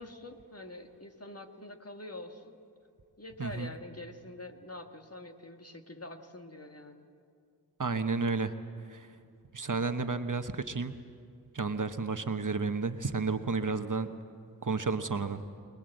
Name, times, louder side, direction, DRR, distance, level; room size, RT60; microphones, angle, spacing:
voice 1, 0.0-2.6 3.2-7.1, left 1 dB, 40° left, 4 dB, 1.8 m, -45 dB
voice 2, 3.4-3.7 7.8-8.5 8.9-9.1 9.5-10.9 11.5-14.1 14.6-15.4, right 4 dB, 55° right, 9 dB, 1.1 m, -31 dB
24.5 x 21.0 x 7.8 m, 2.4 s
wide cardioid pair, 40°, 37 cm